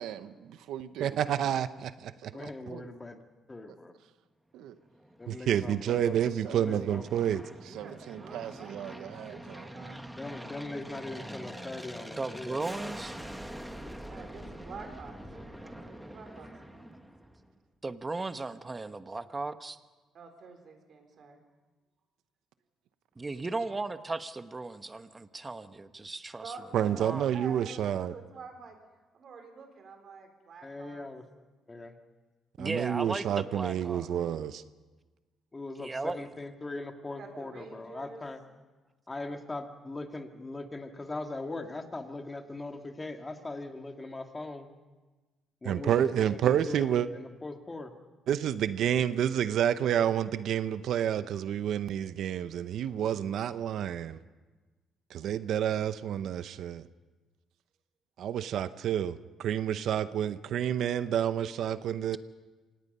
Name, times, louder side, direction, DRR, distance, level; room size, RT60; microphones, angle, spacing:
voice 1, 0.0-1.4 2.2-3.0 3.7-3.8 4.5-4.8 6.3-7.0 7.6-9.8, right 10 dB, 90° right, 12 dB, 1.0 m, -43 dB
voice 2, 1.0-2.3 5.3-7.4 26.7-28.1 32.6-34.6 45.6-47.1 48.3-54.2 55.1-56.8 58.2-62.2, right 10 dB, 75° right, 13 dB, 0.7 m, -29 dB
voice 3, 2.3-3.2 3.5-3.9 5.2-6.1 6.5-7.2 10.2-12.9 30.6-31.2 31.7-32.0 35.5-38.4 39.1-44.7 45.6-47.9, left 2 dB, 20° left, 5 dB, 2.1 m, -40 dB
Aircraft, 4.8-17.6, equal, 5° right, 1.6 m, -45 dB
voice 4, 7.6-10.0 11.4-11.5 14.1-16.9 20.1-21.4 26.4-28.8 29.1-31.1 33.2-33.9 37.2-38.2 39.3-39.4, right 5 dB, 55° right, 5 dB, 4.1 m, -48 dB
voice 5, 12.2-13.3 17.8-19.8 23.2-26.5 26.8-27.3 32.6-34.1 35.8-36.2, right 3 dB, 25° right, 11 dB, 1.1 m, -36 dB
26.0 x 18.5 x 5.5 m, 1.3 s
cardioid pair, 90°, 0 cm